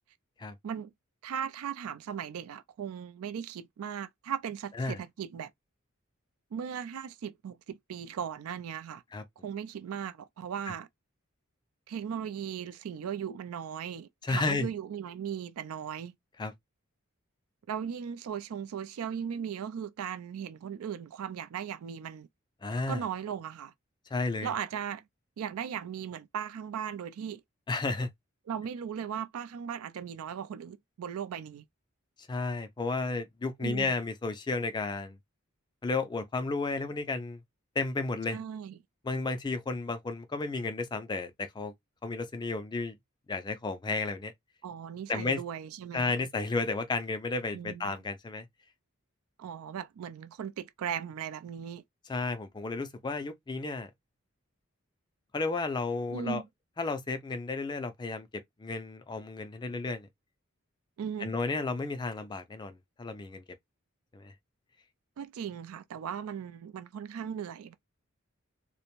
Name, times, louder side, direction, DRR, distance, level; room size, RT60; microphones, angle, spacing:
voice 1, 1.2-5.5 6.5-9.0 9.4-10.9 11.9-16.1 17.7-22.3 22.9-23.7 24.4-25.0 25.4-27.4 28.5-31.6 33.6-33.9 38.3-38.8 44.6-46.1 47.5-48.0 49.4-51.8 56.1-56.5 61.0-61.3 65.2-67.7, right 8 dB, 85° right, 0.3 m, -37 dB
voice 2, 14.2-14.7 16.4-16.5 22.6-23.0 24.1-24.5 27.7-28.1 32.3-35.2 35.8-37.4 37.8-38.4 39.0-41.7 42.0-43.0 43.3-44.3 45.1-45.4 45.9-48.5 52.1-53.9 55.3-56.4 56.8-58.3 58.6-60.1 61.2-63.4 64.1-64.3, left 3 dB, 20° left, 0.3 m, -32 dB
2.5 x 2.1 x 3.0 m
head